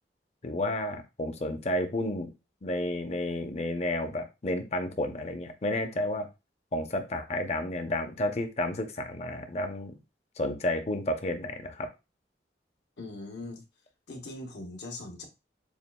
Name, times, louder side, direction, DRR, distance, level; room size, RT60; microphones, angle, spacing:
voice 1, 0.4-2.3 2.6-6.3 6.7-10.0 10.4-11.9, left 1 dB, 40° left, 0.6 m, -31 dB
voice 2, 13.0-13.6 14.1-15.3, left 2 dB, 80° left, 1.1 m, -40 dB
7.0 x 2.4 x 2.2 m
head